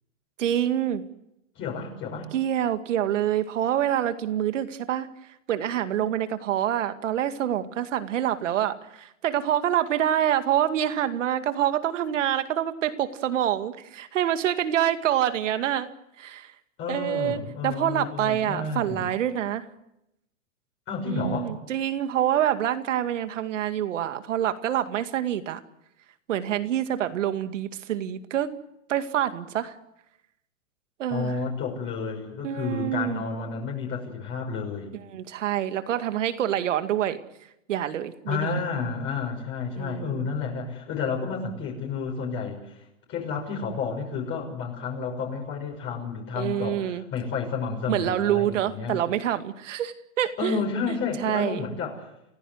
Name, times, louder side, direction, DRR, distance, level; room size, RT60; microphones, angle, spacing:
voice 1, 0.4-1.0 2.3-5.1 5.5-15.9 16.2-16.5 16.9-19.7 21.1-25.6 26.3-28.5 28.9-29.8 31.0-31.4 32.4-33.2 35.1-37.2 37.7-38.6 39.8-40.3 46.4-47.0 47.9-50.6 50.9-51.7, right 11 dB, 65° right, 9 dB, 2.3 m, -26 dB
voice 2, 1.6-2.3 16.8-19.1 20.9-21.5 31.1-34.9 38.3-42.8 43.1-49.0 50.4-52.1, left 5 dB, 30° left, 0 dB, 6.3 m, -31 dB
28.5 x 16.5 x 8.0 m, 0.86 s
hypercardioid pair, 130°, 39 cm